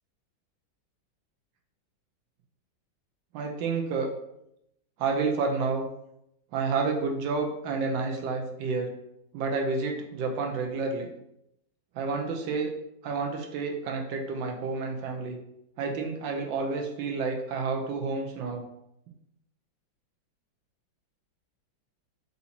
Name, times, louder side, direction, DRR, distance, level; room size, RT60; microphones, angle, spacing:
voice 1, 3.3-4.1 5.0-5.9 6.5-8.9 9.3-11.1 11.9-12.7 13.0-15.4 15.8-18.6, right 4 dB, 80° right, 2 dB, 1.4 m, -30 dB
4.0 x 2.8 x 4.2 m, 0.80 s
omnidirectional pair, 2.1 m